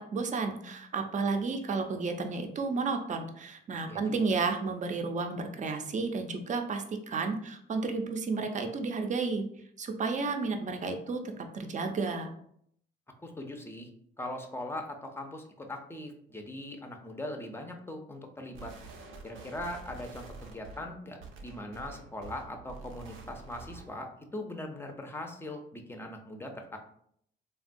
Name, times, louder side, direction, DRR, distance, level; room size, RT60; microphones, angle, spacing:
voice 1, 0.1-9.4 9.8-12.3, right 4 dB, 40° right, 5 dB, 0.5 m, -32 dB
voice 2, 3.8-4.4 13.2-13.9 14.2-18.7 19.2-26.8, left 1 dB, 10° left, 3 dB, 0.5 m, -40 dB
sound 1, 18.5-24.0, right 4 dB, 85° right, 0.5 m, -47 dB
3.4 x 2.2 x 2.5 m, 0.67 s
cardioid pair, 90°, 20 cm